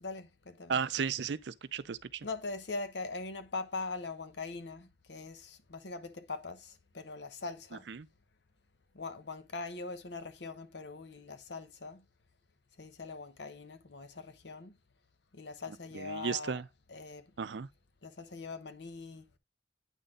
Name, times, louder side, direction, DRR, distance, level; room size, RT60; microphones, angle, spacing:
voice 1, 0.0-0.8 2.2-7.9 8.9-12.0 12.8-14.7 15.3-16.6 16.9-17.3 18.0-19.3, left 3 dB, 70° left, 0.9 m, -42 dB
voice 2, 0.7-2.3 7.9-8.1 15.9-16.7 17.4-17.7, right 6 dB, 70° right, 0.5 m, -34 dB
9.2 x 4.1 x 3.7 m
head